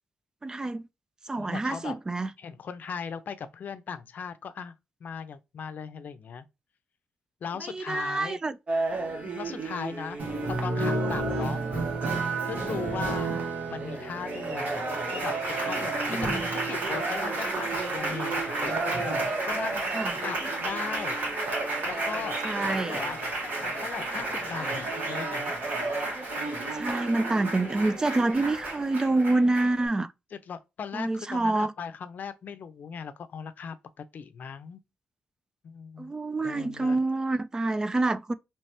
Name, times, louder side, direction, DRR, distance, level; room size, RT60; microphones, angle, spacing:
voice 1, 0.4-0.9 1.3-2.3 7.6-8.6 13.2-13.4 16.1-16.5 19.9-20.2 22.4-23.0 26.7-30.1 30.9-31.7 36.0-38.3, right 2 dB, 20° right, 0.4 m, -27 dB
voice 2, 1.4-2.0 2.4-4.7 5.0-6.5 7.4-8.4 8.9-10.2 10.4-11.6 12.4-18.9 19.5-19.8 20.2-21.2 21.8-23.2 23.6-25.5 30.3-34.8 35.6-36.1 36.4-37.0, left 6 dB, 60° left, 0.6 m, -38 dB
sound 1, 8.7-28.3, right 3 dB, 40° right, 1.0 m, -38 dB
Applause, 10.2-29.9, right 2 dB, 65° right, 1.8 m, -31 dB
3.3 x 3.1 x 2.9 m
cardioid pair, 120°, 3 cm